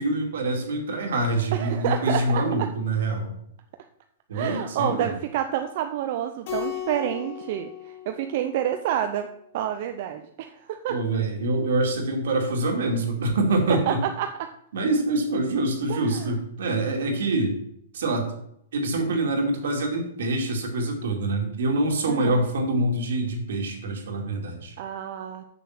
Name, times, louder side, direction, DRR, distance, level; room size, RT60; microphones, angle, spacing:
voice 1, 0.0-3.3 4.3-5.1 10.9-14.0 14.7-17.6 17.9-18.3 18.7-24.7, right 2 dB, 70° right, 2 dB, 2.5 m, -25 dB
voice 2, 1.5-2.7 4.3-7.7 8.1-9.3 9.5-11.0 13.9-14.5 15.9-16.3 22.1-22.5 24.8-25.4, right 10 dB, 40° right, 7 dB, 0.5 m, -28 dB
Keyboard (musical), 6.4-9.1, left 10 dB, 45° left, 3.2 m, -36 dB
7.0 x 6.6 x 5.9 m, 0.72 s
hypercardioid pair, 170°, 0 cm